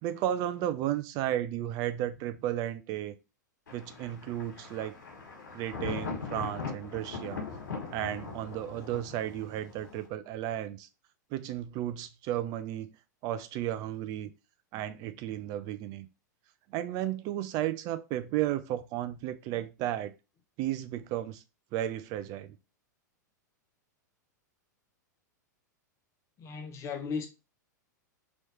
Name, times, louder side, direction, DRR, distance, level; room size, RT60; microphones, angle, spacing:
voice 1, 0.0-3.1 3.7-5.0 5.5-7.4 7.9-10.9 11.3-12.9 13.2-14.3 14.7-16.1 16.7-20.1 20.6-21.4 21.7-22.6, right 12 dB, 40° right, 0.4 m, -33 dB
Thunder, 3.7-10.1, left 4 dB, 70° left, 1.3 m, -40 dB
voice 2, 26.4-27.3, left 5 dB, 30° left, 0.8 m, -36 dB
3.1 x 3.0 x 2.9 m
figure-of-eight pair, 95°, 10 cm